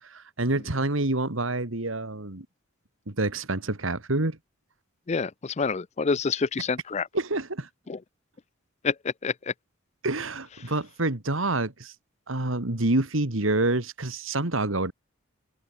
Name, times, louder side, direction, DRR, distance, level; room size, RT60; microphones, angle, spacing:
voice 1, 0.0-2.5 3.1-4.4 7.1-7.7 10.0-11.9 12.3-14.9, right 2 dB, 75° right, 2.3 m, -27 dB
voice 2, 5.1-7.1 7.9-8.0 8.8-9.5, left 5 dB, 35° left, 0.5 m, -27 dB
open air
head